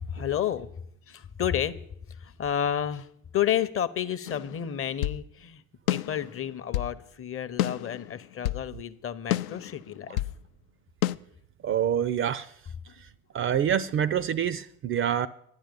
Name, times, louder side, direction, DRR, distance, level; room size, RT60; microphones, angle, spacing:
voice 1, 0.1-0.7 1.1-1.8 2.2-3.1 3.3-5.6 5.9-10.2, left 10 dB, 30° left, 0.7 m, -30 dB
sound 1, 4.3-5.2 5.9-7.0 7.6-8.7 9.3-10.4 11.0-11.2, left 14 dB, 75° left, 0.5 m, -30 dB
voice 2, 11.6-12.5 13.0-13.1 13.3-15.3, right 9 dB, 30° right, 0.4 m, -26 dB
10.5 x 10.0 x 5.1 m
hypercardioid pair, 65°, 43 cm